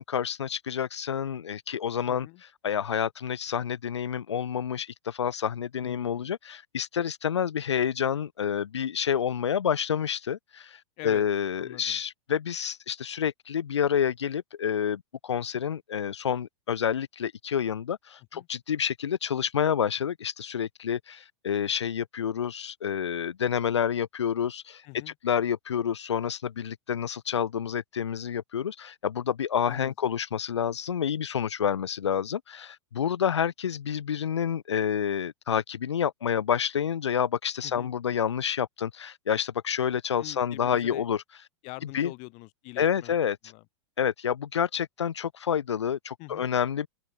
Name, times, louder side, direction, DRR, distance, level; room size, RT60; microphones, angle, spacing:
voice 1, 0.0-2.3 2.6-24.8 25.2-41.2 41.9-42.1 42.8-43.4 44.0-46.9, left 8 dB, 80° left, 0.8 m, -28 dB
voice 2, 2.1-2.4 5.8-6.3 11.0-11.3 11.6-12.0 18.3-18.5 24.8-25.1 29.6-30.1 37.6-37.9 40.2-41.1 41.6-43.2 43.4-43.6 46.2-46.5, left 31 dB, 50° left, 7.6 m, -44 dB
hypercardioid pair, 100°, 14 cm